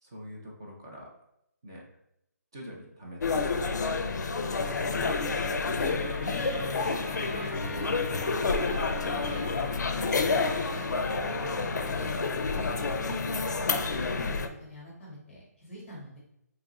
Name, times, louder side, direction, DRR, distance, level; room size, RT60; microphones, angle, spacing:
voice 1, 0.0-1.1 1.6-1.8 2.5-5.2 13.1-13.2, equal, 15° right, -2 dB, 0.3 m, -45 dB
sound 1, 3.2-14.5, left 4 dB, 85° left, 0.4 m, -29 dB
Trumpet, 4.7-12.8, right 1 dB, 50° right, 1.0 m, -47 dB
voice 2, 5.7-6.6 7.1-9.7 9.9-14.3 14.6-16.2, right 1 dB, 5° left, -5 dB, 0.9 m, -44 dB
2.9 x 2.4 x 3.9 m, 0.80 s
hypercardioid pair, 175°, 9 cm